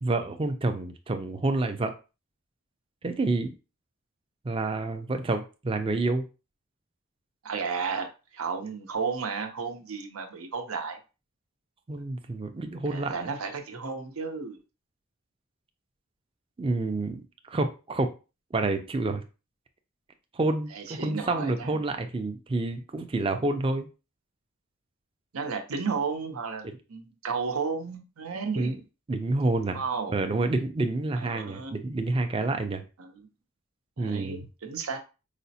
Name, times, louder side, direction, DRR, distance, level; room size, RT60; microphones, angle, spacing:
voice 1, 0.0-1.9 3.0-3.5 4.4-6.2 11.9-13.3 16.6-18.1 18.5-19.2 20.3-23.9 28.6-28.8 29.1-29.8 30.1-32.8 34.0-34.5, right 2 dB, 25° right, 0.4 m, -28 dB
voice 2, 7.4-11.0 12.9-14.6 20.7-21.8 25.3-28.7 29.7-30.2 31.2-31.7 33.0-33.2 34.0-35.0, right 5 dB, 90° right, 0.7 m, -33 dB
4.9 x 2.0 x 2.7 m
head